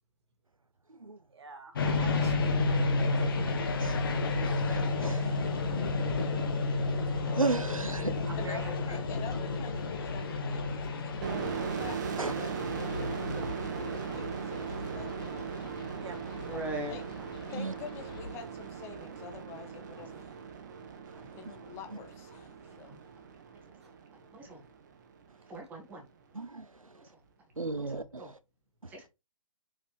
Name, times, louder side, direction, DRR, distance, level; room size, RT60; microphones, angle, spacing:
voice 1, 1.3-3.6 8.3-9.0 16.0-16.2, right 4 dB, 55° right, 1.9 m, -45 dB
Train passing on a raised bridge in Chicago, 1.8-18.3, left 3 dB, 40° left, 1.4 m, -32 dB
voice 2, 4.4-5.2 7.0-8.3 12.2-12.3 17.5-17.7 26.3-26.7 27.6-28.3 28.8-28.9, right 3 dB, 85° right, 0.8 m, -34 dB
voice 3, 5.0-5.9 16.4-17.0 21.1-21.2 23.7-23.8 24.3-24.6 25.5-26.0 27.0-27.1 27.8-28.3 28.9-29.1, right 1 dB, 10° right, 1.7 m, -42 dB
voice 4, 8.4-15.5 16.5-17.0 17.5-20.3 21.3-22.9, left 8 dB, 15° left, 1.1 m, -47 dB
sound 1, 11.2-24.7, right 6 dB, 35° right, 1.2 m, -39 dB
6.2 x 5.6 x 3.3 m
figure-of-eight pair, 135°, 17 cm